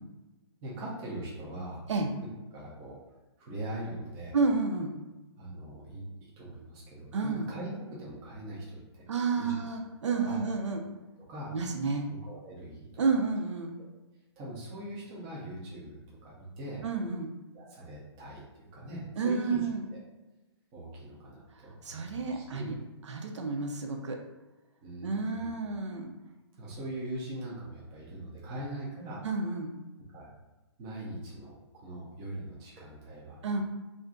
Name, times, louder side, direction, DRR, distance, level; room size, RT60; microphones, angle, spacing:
voice 1, 0.6-1.8 2.5-3.0 3.4-4.4 5.4-9.1 9.4-9.7 10.2-10.4 11.3-11.5 12.1-13.2 14.4-16.8 17.5-19.6 19.9-20.0 20.7-22.7 24.8-25.5 26.6-29.2 30.1-30.3 30.8-33.4, right 1 dB, 10° right, -5 dB, 0.4 m, -41 dB
voice 2, 4.3-4.9 7.1-7.5 9.1-10.8 11.5-12.1 13.0-13.7 16.8-17.3 19.2-19.8 21.5-22.7 23.1-24.2 25.0-26.1 29.2-29.7 33.4-33.6, right 4 dB, 85° right, 3 dB, 0.6 m, -30 dB
2.5 x 2.2 x 3.7 m, 1.1 s
hypercardioid pair, 170°, 15 cm